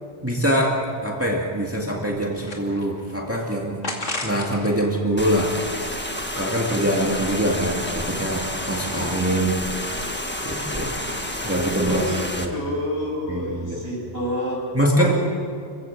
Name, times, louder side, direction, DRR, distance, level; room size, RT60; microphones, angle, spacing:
voice 1, 0.2-3.8 4.2-5.5 6.4-9.6 10.4-10.9 11.4-12.0 12.4-12.5 13.3-13.8 14.7-15.1, right 1 dB, 10° right, -1 dB, 2.2 m, -23 dB
sound 1, 2.2-3.1 3.8-4.7 5.1-6.3, left 2 dB, 85° left, 2.7 m, -34 dB
sound 2, 5.2-12.5, left 1 dB, 10° left, 1.4 m, -30 dB
voice 2, 11.7-14.6 15.0-15.1, left 1 dB, 60° left, -4 dB, 7.6 m, -28 dB
26.0 x 16.0 x 7.3 m, 2.3 s
omnidirectional pair, 1.2 m